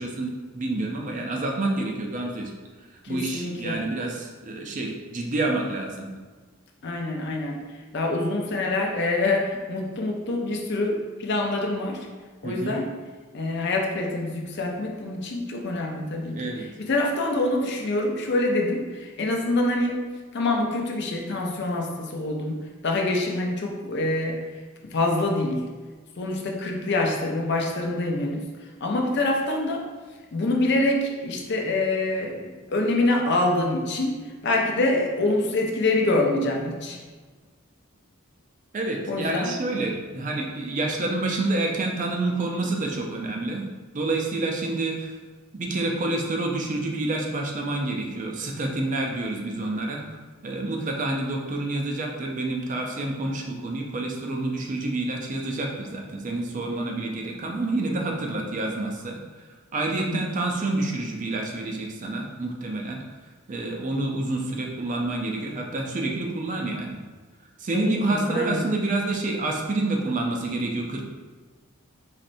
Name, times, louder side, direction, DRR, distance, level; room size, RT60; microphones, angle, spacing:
voice 1, 0.0-2.6 3.1-6.1 12.4-12.8 16.3-16.7 38.7-43.6 43.9-45.2 45.5-50.0 50.4-59.2 59.7-63.0 63.5-67.0 67.6-71.0, right 2 dB, 35° right, 1 dB, 0.4 m, -28 dB
voice 2, 3.0-3.8 6.8-7.6 7.9-12.1 12.4-12.9 13.3-20.0 20.3-22.6 22.8-24.4 24.8-25.6 26.2-28.4 28.8-29.8 30.3-32.4 32.7-34.2 34.4-37.0 39.1-39.5 60.1-60.2 67.7-68.6, left 2 dB, 50° left, 1 dB, 0.5 m, -25 dB
4.1 x 3.1 x 2.6 m, 1.4 s
head